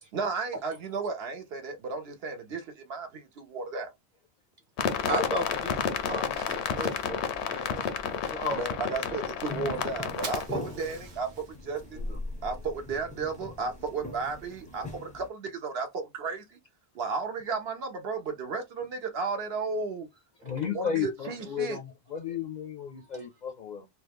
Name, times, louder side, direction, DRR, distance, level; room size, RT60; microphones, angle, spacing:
voice 1, 0.1-3.9 8.5-11.3 11.6-12.1 12.4-16.4 16.9-20.1 20.7-21.8, right 4 dB, 70° right, 0.9 m, -34 dB
sound 1, 4.8-10.5, left 7 dB, 90° left, 0.9 m, -31 dB
voice 2, 5.1-7.8 8.3-8.6 8.9-9.2 11.9-12.2 20.4-20.5, right 1 dB, 40° right, 1.1 m, -35 dB
Fire, 5.2-14.9, equal, 90° right, 1.2 m, -45 dB
sound 2, 9.4-15.3, left 2 dB, 10° left, 0.5 m, -43 dB
voice 3, 20.4-23.9, left 8 dB, 55° left, 0.5 m, -33 dB
3.0 x 2.3 x 3.4 m
omnidirectional pair, 1.1 m